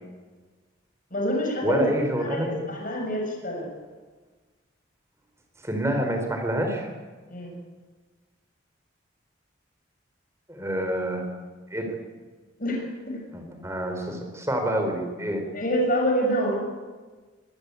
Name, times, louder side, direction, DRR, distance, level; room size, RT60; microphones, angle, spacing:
voice 1, 1.1-1.9 2.2-3.7 7.3-7.5 12.6-13.2 15.5-16.6, equal, 45° left, 1 dB, 6.4 m, -27 dB
voice 2, 1.6-2.5 5.6-6.9 10.5-11.2 11.7-11.9 13.3-15.4, equal, 15° right, 4 dB, 4.5 m, -27 dB
24.5 x 19.0 x 8.6 m, 1.4 s
head